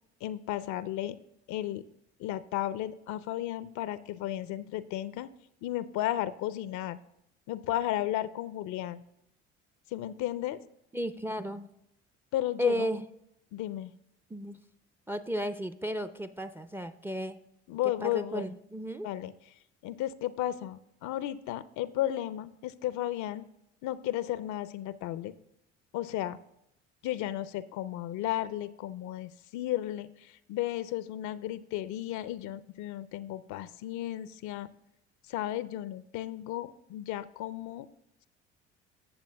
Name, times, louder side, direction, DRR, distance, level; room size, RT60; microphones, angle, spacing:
voice 1, 0.2-1.2 1.5-1.8 2.2-5.3 5.6-7.0 7.5-9.0 9.9-10.6 12.3-12.9 13.5-13.9 17.7-18.5 19.0-19.3 19.8-23.5 23.8-25.3 25.9-26.4 27.0-34.7 35.3-37.9, left 13 dB, 55° left, 15 dB, 0.5 m, -34 dB
voice 2, 10.9-11.7 12.6-13.0 14.3-14.6 15.1-17.4 18.0-19.1, equal, 5° right, 11 dB, 0.5 m, -34 dB
15.0 x 6.9 x 2.2 m, 0.79 s
hypercardioid pair, 60°, 34 cm